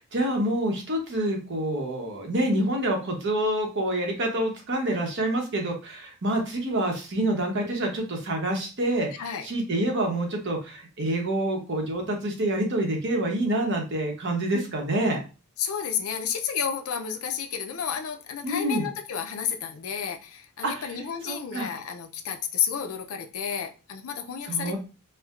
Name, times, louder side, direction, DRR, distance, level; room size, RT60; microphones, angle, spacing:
voice 1, 0.0-9.1 9.4-15.2 18.4-18.9 20.6-20.9 21.3-21.7 24.4-24.8, right 1 dB, 55° right, 0.9 m, -27 dB
voice 2, 15.6-24.8, left 8 dB, 70° left, 0.5 m, -31 dB
4.4 x 2.1 x 2.4 m
head